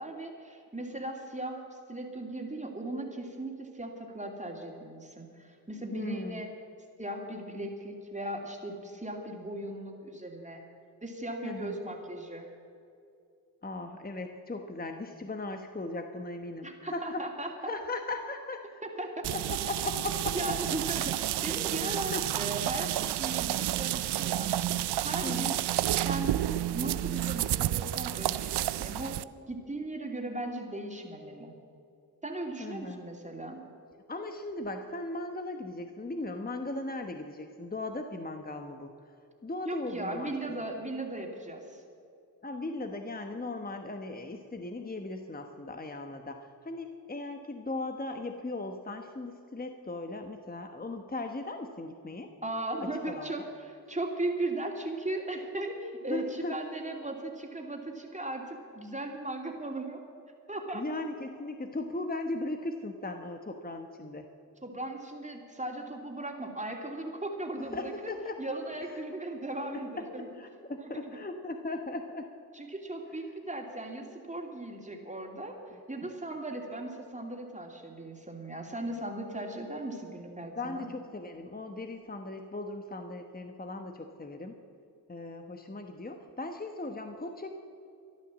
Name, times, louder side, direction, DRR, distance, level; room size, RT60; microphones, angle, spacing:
voice 1, 0.0-1.6 1.9-6.5 7.0-10.6 11.0-12.5 16.6-17.7 18.8-19.3 20.3-24.6 25.0-25.6 26.0-29.2 29.5-31.5 32.2-33.6 39.7-41.8 52.4-60.0 60.5-60.8 64.6-67.9 68.4-70.3 70.8-71.2 72.5-75.5 75.9-80.9, right 2 dB, 20° right, 2 dB, 2.9 m, -37 dB
voice 2, 5.9-6.4 11.4-11.8 13.6-17.2 17.6-18.8 19.3-20.5 21.8-22.2 23.0-23.1 25.2-25.5 32.6-33.0 34.1-38.9 39.4-40.7 42.4-52.3 52.8-53.5 56.1-56.5 60.7-64.3 67.6-68.4 70.3-72.3 80.6-84.6 85.1-87.5, left 2 dB, 25° left, 5 dB, 1.2 m, -38 dB
sound 1, 19.2-29.2, right 13 dB, 80° right, 0.5 m, -30 dB
14.0 x 11.0 x 7.4 m, 2.6 s
cardioid pair, 45°, 39 cm